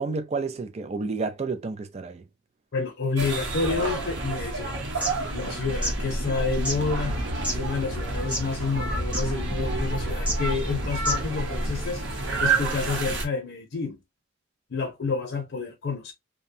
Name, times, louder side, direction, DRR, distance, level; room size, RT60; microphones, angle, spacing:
voice 1, 0.0-2.2, right 4 dB, 30° right, 0.4 m, -30 dB
voice 2, 2.7-4.8 5.3-7.2 7.5-12.0 12.4-14.0 14.7-16.1, left 4 dB, 60° left, 0.6 m, -29 dB
sound 1, 3.2-13.2, right 2 dB, 60° right, 0.8 m, -29 dB
sound 2, 4.8-5.1 5.7-5.9 6.6-6.8 7.4-7.6 8.2-8.5 8.8-8.9 9.1-9.3 10.2-10.4 10.9-11.3, equal, 5° right, 0.7 m, -29 dB
2.6 x 2.2 x 2.6 m
head